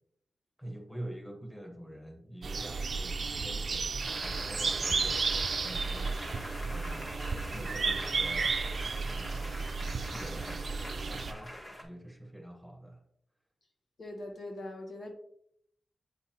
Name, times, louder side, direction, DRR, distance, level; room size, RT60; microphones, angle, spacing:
voice 1, 0.6-5.3 5.6-6.2 6.7-7.2 7.5-8.6 9.0-10.7 10.9-11.6 11.8-13.0, right 1 dB, 5° left, 1.4 m, -46 dB
sound 1, 2.4-11.3, right 4 dB, 60° right, 0.4 m, -33 dB
sound 2, 4.0-11.8, equal, 30° left, 1.7 m, -44 dB
voice 2, 14.0-15.1, left 1 dB, 75° left, 1.3 m, -41 dB
8.1 x 5.5 x 2.9 m
wide cardioid pair, 110°, 0 cm